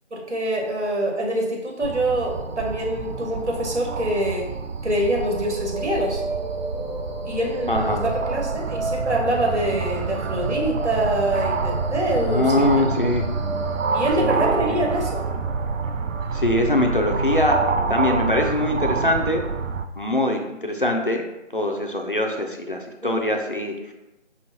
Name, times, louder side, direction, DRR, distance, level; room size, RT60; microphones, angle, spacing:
voice 1, 0.1-4.5 4.8-6.2 7.2-12.6 13.9-15.2 23.0-23.2, right 1 dB, 65° right, -1 dB, 1.4 m, -25 dB
sound 1, 1.8-19.8, right 4 dB, 80° right, 0.5 m, -27 dB
sound 2, 5.0-18.9, right 1 dB, 40° right, 0.8 m, -34 dB
voice 2, 7.7-8.0 12.2-13.3 14.2-14.4 14.7-14.8 16.3-17.6 17.9-19.4 20.0-21.2 21.5-23.9, left 1 dB, 45° left, 2 dB, 0.5 m, -23 dB
5.4 x 3.1 x 2.8 m, 0.96 s
figure-of-eight pair, 160°, 37 cm